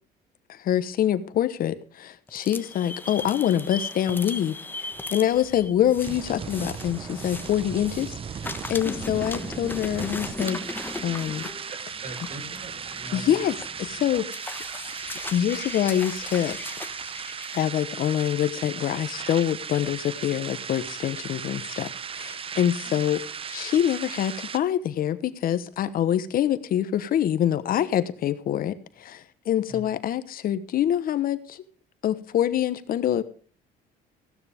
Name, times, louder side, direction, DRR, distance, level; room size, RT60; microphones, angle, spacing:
voice 1, 0.5-8.2 8.7-10.6 11.0-11.5 13.1-14.3 15.3-16.6 17.5-23.2 23.5-31.6 32.0-33.2, left 10 dB, 60° left, 13 dB, 1.1 m, -25 dB
sound 1, 2.3-8.1 8.4-17.6, left 2 dB, 10° left, 1.2 m, -38 dB
sound 2, 4.9-24.6, right 7 dB, 35° right, 0.7 m, -37 dB
voice 2, 11.7-13.4 22.8-23.0 29.7-29.9, right 2 dB, 50° right, 8 dB, 4.2 m, -41 dB
15.5 x 12.0 x 3.6 m, 0.42 s
cardioid pair, 110°, 17 cm